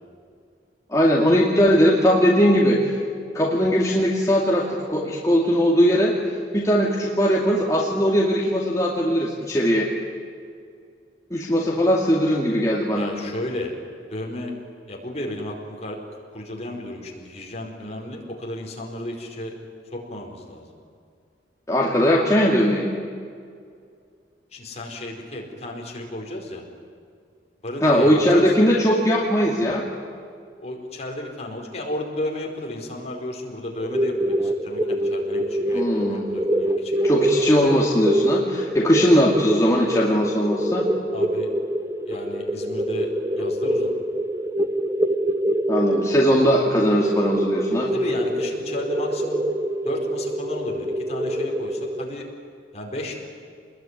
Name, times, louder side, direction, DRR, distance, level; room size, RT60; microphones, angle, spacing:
voice 1, 0.9-3.0 3.3-9.9 11.3-13.1 21.7-22.9 27.8-29.9 35.7-36.3 37.0-40.9 45.7-47.9, equal, 20° left, -3 dB, 2.4 m, -19 dB
voice 2, 12.9-13.7 14.1-14.5 14.9-16.0 16.3-19.5 19.9-20.7 24.5-26.6 27.6-28.5 30.6-37.5 41.1-41.5 42.1-43.1 43.4-43.9 47.9-49.4 49.8-52.3 52.7-53.2, left 1 dB, 40° left, 0 dB, 4.8 m, -33 dB
sound 1, 33.8-52.1, right 1 dB, 15° right, 0.9 m, -25 dB
27.0 x 21.0 x 9.8 m, 2.3 s
head